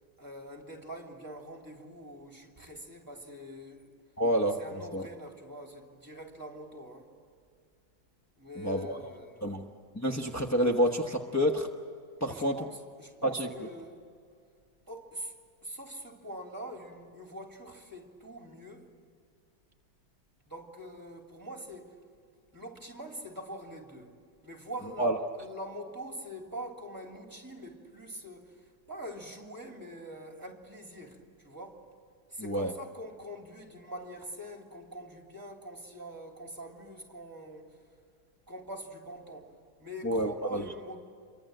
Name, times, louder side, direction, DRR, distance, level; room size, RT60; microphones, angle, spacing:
voice 1, 0.2-3.9 4.6-7.1 8.4-9.6 12.2-14.0 14.9-15.3 15.6-18.9 20.5-22.0 22.5-24.2 24.4-31.9 32.3-37.8 38.5-39.5 39.8-41.0, right 1 dB, 10° right, 2.9 m, -44 dB
voice 2, 4.2-4.6 4.9-5.0 8.6-8.9 9.4-9.6 9.9-11.7 12.2-12.6 13.3-13.5 25.0-25.1 32.4-32.7 40.0-40.6, equal, 15° left, 0.5 m, -28 dB
29.0 x 24.0 x 7.8 m
omnidirectional pair, 2.3 m